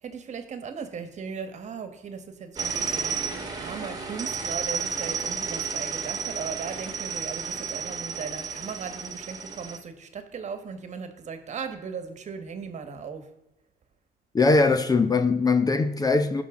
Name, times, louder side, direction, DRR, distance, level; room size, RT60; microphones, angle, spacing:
voice 1, 0.0-13.3, right 6 dB, 45° right, 1.4 m, -37 dB
sound 1, 2.6-9.8, right 6 dB, 20° right, 1.6 m, -32 dB
voice 2, 14.3-16.4, left 3 dB, 20° left, 0.7 m, -21 dB
17.0 x 5.9 x 3.7 m
cardioid pair, 110°, 17 cm